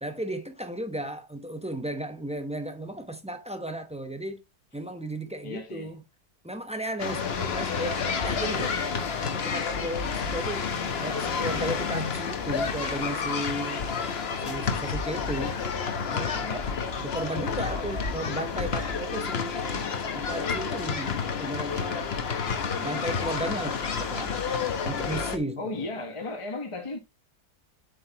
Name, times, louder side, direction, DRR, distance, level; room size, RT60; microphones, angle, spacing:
voice 1, 0.0-4.4 4.7-6.0 6.4-8.0 8.2-8.8 9.2-10.7 11.0-13.9 14.4-15.6 16.1-16.4 17.0-19.8 20.1-22.1 22.8-24.3 24.8-25.9, right 1 dB, 10° right, 0.3 m, -34 dB
voice 2, 5.4-5.9 7.4-7.6 16.3-16.7 25.6-27.0, left 2 dB, 20° left, 1.0 m, -35 dB
sound 1, 7.0-25.4, left 5 dB, 45° left, 1.0 m, -30 dB
7.8 x 5.3 x 2.9 m
omnidirectional pair, 1.7 m